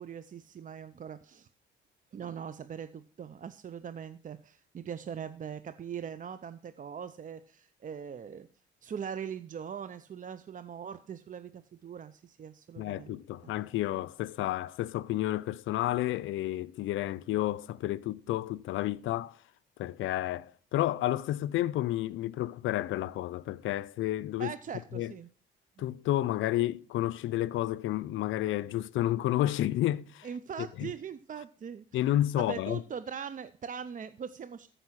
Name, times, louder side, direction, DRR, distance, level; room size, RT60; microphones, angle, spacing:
voice 1, 0.0-1.5 2.1-8.5 8.8-13.5 24.4-25.3 25.8-25.9 30.2-31.8 32.4-34.7, right 7 dB, 40° right, 0.6 m, -41 dB
voice 2, 12.8-19.4 19.8-24.5 24.9-25.1 25.8-30.3 30.8-30.9 31.9-32.8, left 14 dB, 80° left, 0.5 m, -31 dB
14.0 x 5.4 x 6.3 m
cardioid pair, 90°, 20 cm